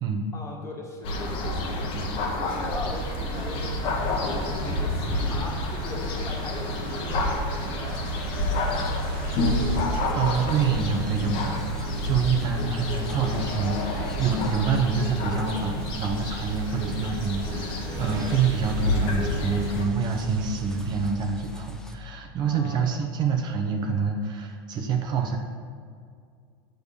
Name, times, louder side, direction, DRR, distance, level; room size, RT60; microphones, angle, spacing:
voice 1, 0.3-1.8 2.3-9.1 22.4-23.0, left 2 dB, 25° left, -1 dB, 2.0 m, -40 dB
sound 1, 1.0-19.9, left 2 dB, 50° left, 1.5 m, -29 dB
sound 2, 2.9-21.1, right 10 dB, 75° right, 0.6 m, -38 dB
sound 3, 7.9-22.0, left 2 dB, 5° left, 0.8 m, -42 dB
voice 2, 10.1-25.4, right 5 dB, 40° right, 3 dB, 0.9 m, -27 dB
6.8 x 6.5 x 6.9 m, 2.2 s
supercardioid pair, 115°, 12 cm